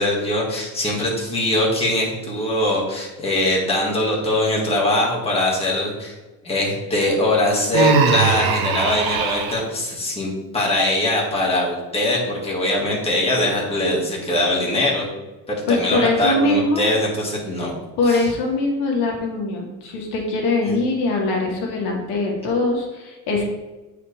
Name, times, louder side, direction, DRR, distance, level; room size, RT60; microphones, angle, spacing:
voice 1, 0.0-6.1 6.4-15.1 15.5-17.7 18.0-18.3 20.6-20.8, left 1 dB, 15° left, -3 dB, 1.8 m, -22 dB
Human voice, 7.7-9.6, right 6 dB, 60° right, 0.8 m, -20 dB
voice 2, 15.7-16.8 18.0-23.4, left 2 dB, 80° left, 0 dB, 1.9 m, -22 dB
8.6 x 4.8 x 3.3 m, 1.1 s
cardioid pair, 155°, 40 cm